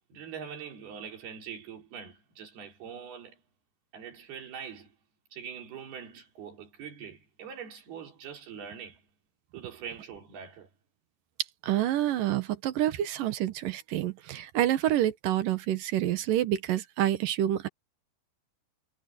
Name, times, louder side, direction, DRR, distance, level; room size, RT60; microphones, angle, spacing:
voice 1, 0.1-3.4 3.9-5.0 5.3-9.1 9.5-10.7, right 7 dB, 85° right, 5.6 m, -43 dB
voice 2, 11.6-17.7, right 12 dB, 70° right, 2.7 m, -28 dB
omnidirectional pair, 4.4 m